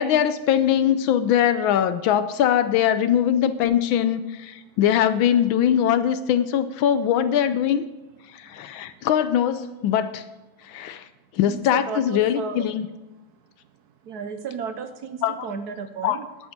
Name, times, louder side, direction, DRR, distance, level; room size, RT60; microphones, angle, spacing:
voice 1, 0.0-7.8 8.3-10.2 10.7-11.0 11.3-12.8 15.2-15.3 16.0-16.2, left 10 dB, 80° left, 12 dB, 1.4 m, -21 dB
voice 2, 11.5-12.7 14.1-16.3, right 6 dB, 60° right, 8 dB, 1.1 m, -33 dB
12.0 x 8.6 x 6.0 m, 1.0 s
omnidirectional pair, 2.2 m